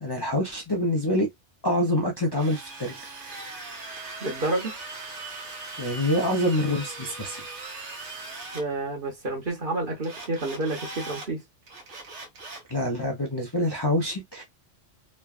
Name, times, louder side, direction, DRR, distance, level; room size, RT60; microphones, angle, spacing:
voice 1, 0.0-1.3 1.6-3.3 5.8-7.4 12.7-14.4, left 1 dB, 30° left, 0.5 m, -26 dB
Drill, 2.3-8.6 10.0-11.3 11.7-12.7, right 3 dB, 80° right, 1.2 m, -39 dB
voice 2, 4.2-4.7 8.5-11.4, right 2 dB, 50° right, 1.2 m, -29 dB
3.2 x 2.3 x 2.3 m
omnidirectional pair, 1.2 m